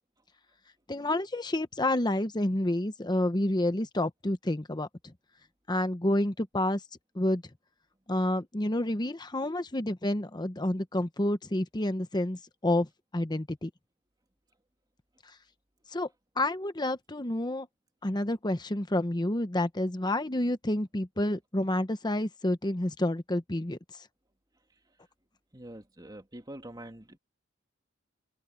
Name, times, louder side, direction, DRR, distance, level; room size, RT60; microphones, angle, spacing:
voice 1, 0.9-5.1 5.7-6.8 7.1-7.4 8.1-13.7 15.9-16.1 16.4-17.7 18.0-24.1, left 1 dB, 20° left, 1.0 m, -29 dB
voice 2, 25.5-27.2, right 1 dB, 20° right, 2.5 m, -45 dB
open air
head